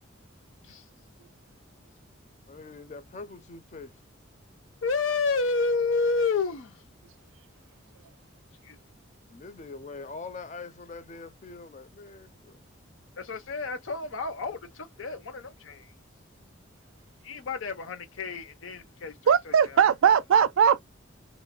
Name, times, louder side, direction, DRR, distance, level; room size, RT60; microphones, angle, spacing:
voice 1, 2.5-3.9 9.3-12.6, left 4 dB, 35° left, 0.4 m, -43 dB
voice 2, 4.8-6.8 8.6-8.8 13.2-15.9 17.2-19.8, left 4 dB, 75° left, 0.6 m, -30 dB
voice 3, 19.3-20.8, right 8 dB, 80° right, 0.4 m, -20 dB
3.0 x 2.1 x 2.3 m
head